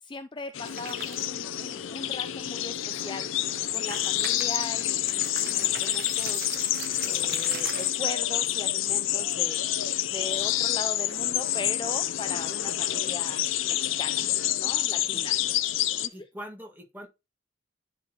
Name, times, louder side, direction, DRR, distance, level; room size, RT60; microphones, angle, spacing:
voice 1, 0.1-3.3 3.7-6.6 7.1-9.6 10.1-14.3 14.6-15.3 16.0-16.1, left 3 dB, 25° left, 0.3 m, -39 dB
sound 1, 0.5-16.1, left 13 dB, 85° left, 0.5 m, -28 dB
sound 2, 0.7-1.4 1.8-1.9 2.5-2.6 3.6-8.1, right 10 dB, 50° right, 0.4 m, -41 dB
voice 2, 16.1-17.1, equal, 10° right, 1.7 m, -43 dB
10.5 x 4.2 x 2.9 m
head